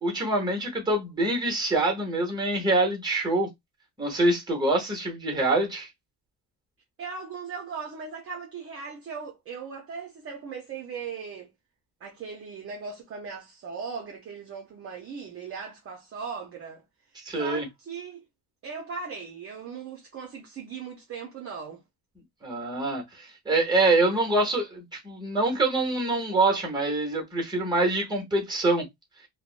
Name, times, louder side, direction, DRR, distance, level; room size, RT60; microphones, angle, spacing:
voice 1, 0.0-3.5 4.0-5.9 17.2-17.7 22.4-28.9, right 2 dB, 10° right, 0.9 m, -25 dB
voice 2, 7.0-11.5 12.0-16.8 17.4-18.2 18.6-21.8, right 5 dB, 35° right, 0.5 m, -38 dB
3.3 x 2.1 x 2.4 m
cardioid pair, 175°, 42 cm